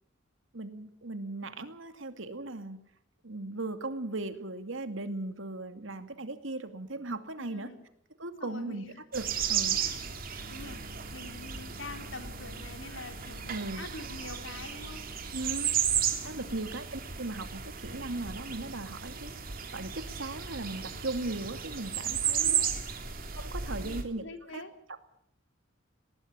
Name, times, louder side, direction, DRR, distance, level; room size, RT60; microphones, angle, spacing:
voice 1, 0.5-2.8 3.2-7.7 8.2-8.8 9.1-9.8 13.5-13.8 15.3-15.7 16.2-19.3 19.7-22.6 23.4-24.3 24.5-24.6 24.9-25.0, right 2 dB, 80° right, 8 dB, 2.4 m, -37 dB
voice 2, 7.4-7.9 8.4-9.0 9.8-9.9 10.5-10.8 11.1-15.0 16.3-16.5 22.4-22.9 23.8-24.7, left 3 dB, 75° left, 6 dB, 3.6 m, -45 dB
sound 1, 9.1-24.0, right 8 dB, 50° right, 2.9 m, -34 dB
20.0 x 18.5 x 8.9 m, 0.68 s
head